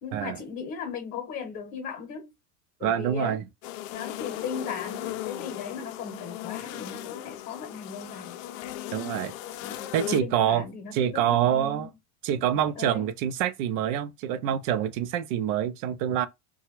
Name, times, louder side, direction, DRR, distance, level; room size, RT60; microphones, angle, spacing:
voice 1, 0.0-2.3 2.8-3.4 3.9-8.4 9.6-9.9 10.2-11.9 12.7-13.1, left 6 dB, 35° left, 0.9 m, -37 dB
voice 2, 2.8-3.4 8.9-9.3 9.9-10.6 10.9-11.9 12.2-16.3, right 10 dB, 65° right, 0.5 m, -26 dB
sound 1, 3.6-10.2, left 13 dB, 65° left, 0.5 m, -37 dB
2.8 x 2.3 x 3.0 m
supercardioid pair, 160°, 42 cm